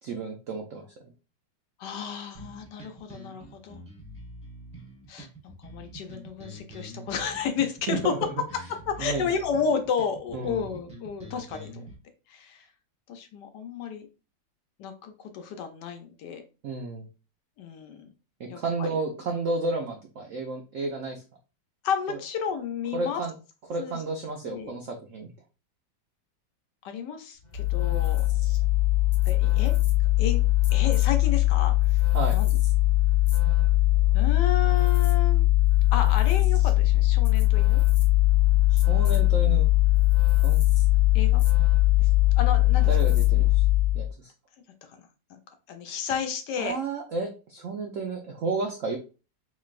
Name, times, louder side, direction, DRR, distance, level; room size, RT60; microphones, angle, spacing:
voice 1, 0.0-1.1 7.9-8.2 9.0-9.2 10.3-10.7 16.6-17.1 18.4-21.2 22.1-22.2 22.9-23.3 23.7-25.3 32.1-32.4 38.7-39.7 40.4-40.6 42.9-43.6 43.9-44.3 46.6-49.0, right 3 dB, 75° right, 2 dB, 0.7 m, -32 dB
voice 2, 1.8-3.8 5.1-5.3 5.6-8.1 8.9-11.8 12.3-12.7 13.1-14.1 14.8-16.4 17.6-18.0 18.4-19.0 21.8-23.2 23.8-24.0 24.4-24.8 26.8-28.3 29.3-29.7 30.2-30.4 30.7-32.0 32.3-32.5 34.1-35.5 35.9-37.8 41.1-41.4 42.0-42.1 42.4-42.9 44.9-45.0 45.3-45.4 45.7-46.8, left 6 dB, 70° left, 6 dB, 1.2 m, -32 dB
sound 1, 2.3-11.9, right 1 dB, 5° right, 0.7 m, -45 dB
sound 2, 27.5-44.1, left 17 dB, 45° left, 0.6 m, -21 dB
3.9 x 3.2 x 2.4 m, 0.32 s
omnidirectional pair, 2.0 m